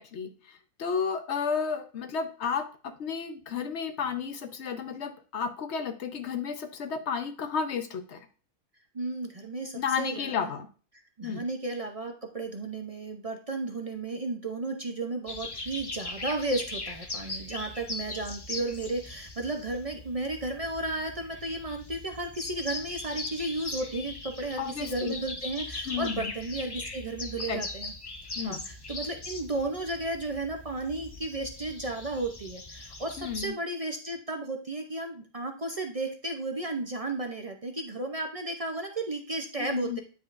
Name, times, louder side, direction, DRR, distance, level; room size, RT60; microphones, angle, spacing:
voice 1, 0.0-8.3 9.7-10.7 11.2-11.4 24.6-25.1 25.8-26.3 27.5-27.6 28.4-28.6 33.2-33.5 39.6-40.0, left 6 dB, 55° left, 7 dB, 1.0 m, -32 dB
voice 2, 8.9-10.5 11.2-27.9 28.4-40.0, right 2 dB, 45° right, 3 dB, 0.4 m, -34 dB
sound 1, 15.3-33.5, left 2 dB, 40° left, 0.3 m, -40 dB
9.4 x 5.5 x 2.5 m, 0.38 s
omnidirectional pair, 1.6 m